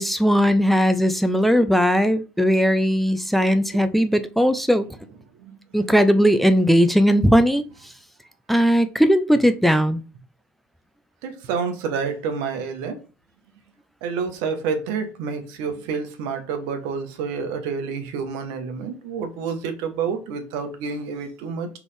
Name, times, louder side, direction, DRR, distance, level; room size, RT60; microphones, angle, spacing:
voice 1, 0.0-4.9 5.7-7.6 8.5-10.0, equal, ahead, 0.5 m, -18 dB
voice 2, 11.2-13.0 14.0-21.7, right 5 dB, 75° right, 1.0 m, -28 dB
4.0 x 3.5 x 3.2 m
supercardioid pair, 85°, 7 cm